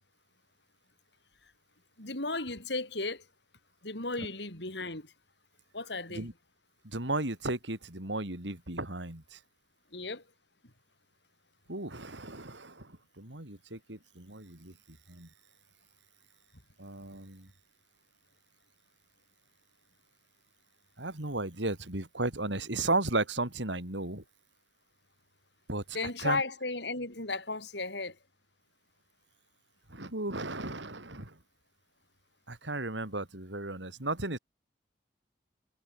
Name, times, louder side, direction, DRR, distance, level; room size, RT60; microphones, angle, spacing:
voice 1, 2.0-3.3 3.8-5.1 5.7-6.3 9.9-10.2 25.9-28.2, left 3 dB, 75° left, 7.5 m, -35 dB
voice 2, 6.8-9.4 11.7-15.3 16.8-17.5 21.0-24.2 25.7-26.4 29.9-31.3 32.5-34.4, right 2 dB, 85° right, 4.7 m, -35 dB
head